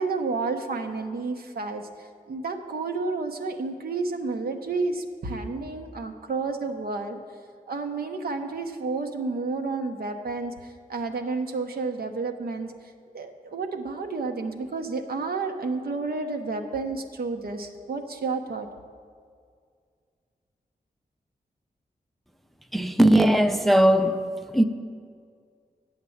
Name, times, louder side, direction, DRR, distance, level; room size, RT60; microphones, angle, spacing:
voice 1, 0.0-7.2 7.7-12.7 13.1-18.7, right 3 dB, 80° right, 0.9 m, -31 dB
voice 2, 22.7-24.2 24.5-24.6, right 1 dB, ahead, 0.4 m, -18 dB
8.7 x 8.2 x 7.2 m
wide cardioid pair, 120°, 16 cm